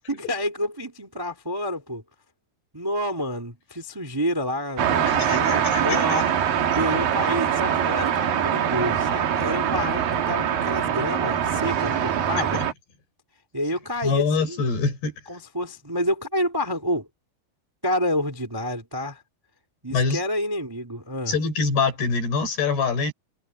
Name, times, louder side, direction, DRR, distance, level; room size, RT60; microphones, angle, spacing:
voice 1, 0.1-2.0 2.7-8.2 8.4-12.6 13.5-14.6 15.3-17.1 17.8-19.2 19.8-21.3, equal, 15° right, 0.9 m, -29 dB
sound 1, 4.8-12.7, right 9 dB, 60° right, 3.3 m, -23 dB
voice 2, 5.1-6.3 6.7-6.8 12.4-12.7 14.0-15.1 19.9-20.2 21.3-23.1, left 4 dB, 75° left, 7.8 m, -25 dB
omnidirectional pair, 4.8 m